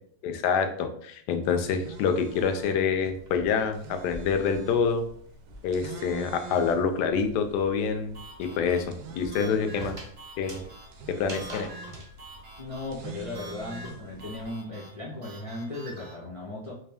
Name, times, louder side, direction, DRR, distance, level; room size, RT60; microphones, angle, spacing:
voice 1, 0.2-5.0 5.6-10.0 10.4-10.6 11.2-11.7, left 6 dB, 75° left, 7 dB, 1.1 m, -27 dB
sound 1, 1.5-14.5, right 5 dB, 75° right, 1.0 m, -46 dB
sound 2, 2.2-6.0 6.2-12.1, equal, 30° right, 0.5 m, -46 dB
sound 3, 8.1-16.1, right 1 dB, 45° right, 1.0 m, -48 dB
voice 2, 12.6-16.7, left 2 dB, 55° left, -6 dB, 0.3 m, -37 dB
3.4 x 2.8 x 3.4 m, 0.63 s
omnidirectional pair, 1.9 m